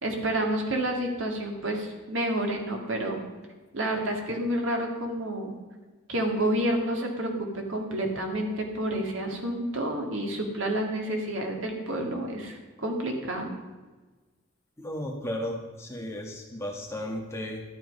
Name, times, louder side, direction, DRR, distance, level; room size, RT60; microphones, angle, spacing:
voice 1, 0.0-3.2 3.7-5.6 6.1-13.5, right 1 dB, 75° right, 2 dB, 2.3 m, -29 dB
voice 2, 14.8-17.6, left 1 dB, 15° left, 0 dB, 1.6 m, -34 dB
13.0 x 10.5 x 5.5 m, 1.3 s
head